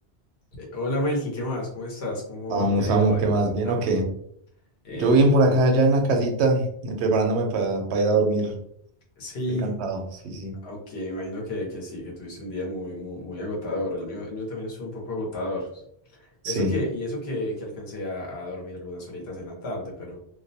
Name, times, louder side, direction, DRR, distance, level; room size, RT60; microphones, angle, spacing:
voice 1, 0.6-3.8 4.8-5.3 9.2-9.8 10.6-15.8 16.1-20.2, left 1 dB, 70° left, -2 dB, 1.1 m, -32 dB
voice 2, 2.5-4.1 5.0-8.5 9.6-10.5 16.4-16.7, right 2 dB, 75° right, 3 dB, 0.8 m, -22 dB
2.5 x 2.1 x 2.6 m, 0.68 s
omnidirectional pair, 1.1 m